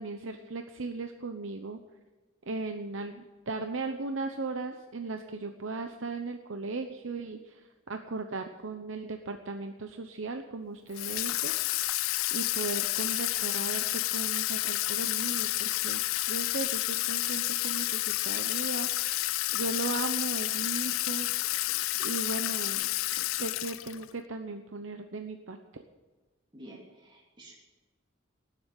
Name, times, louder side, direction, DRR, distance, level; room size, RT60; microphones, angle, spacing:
voice 1, 0.0-1.8 2.5-11.8 12.3-19.1 19.5-21.3 22.0-22.9 23.3-25.8, right 3 dB, 70° right, 6 dB, 0.9 m, -37 dB
Water tap faucet / Sink (filling or washing), 10.9-24.1, left 18 dB, 90° left, 0.4 m, -30 dB
voice 2, 26.5-27.5, right 1 dB, 25° right, -3 dB, 3.0 m, -50 dB
18.5 x 7.9 x 9.1 m, 1.3 s
head